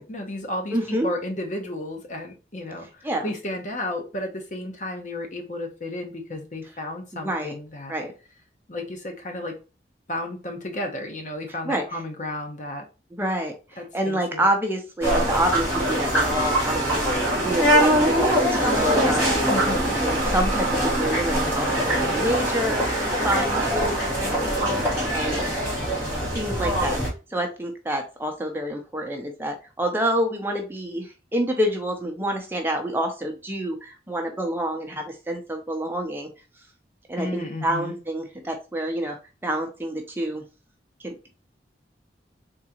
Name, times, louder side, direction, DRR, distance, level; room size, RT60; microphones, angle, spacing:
voice 1, 0.0-7.9 8.7-9.6 10.1-12.9 13.8-14.5 19.5-20.0 21.8-22.3 25.3-25.7 37.2-38.0, left 1 dB, 45° left, 3 dB, 0.9 m, -33 dB
voice 2, 0.7-1.1 3.0-3.3 7.1-7.5 7.9-8.1 11.6-11.8 13.1-25.4 26.3-27.0 27.3-36.3 37.1-39.2 39.4-40.4 41.0-41.3, right 1 dB, 10° right, 3 dB, 0.6 m, -28 dB
sound 1, 15.0-27.1, right 1 dB, 10° left, 2.5 m, -23 dB
3.9 x 3.7 x 2.9 m, 0.31 s
head